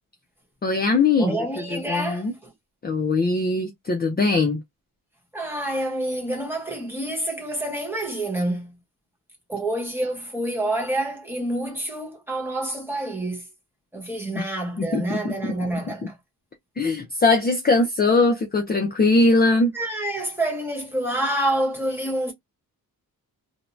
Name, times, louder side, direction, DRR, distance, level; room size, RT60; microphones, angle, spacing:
voice 1, 0.6-1.4 1.7-2.3 2.8-4.6 14.4-14.5 14.8-15.3 16.8-19.7, left 3 dB, 25° left, 0.5 m, -21 dB
voice 2, 1.2-2.3 5.3-8.7 9.5-13.4 13.9-16.1 19.7-22.3, right 1 dB, 5° right, 1.1 m, -27 dB
2.7 x 2.1 x 3.1 m
wide cardioid pair, 170°, 36 cm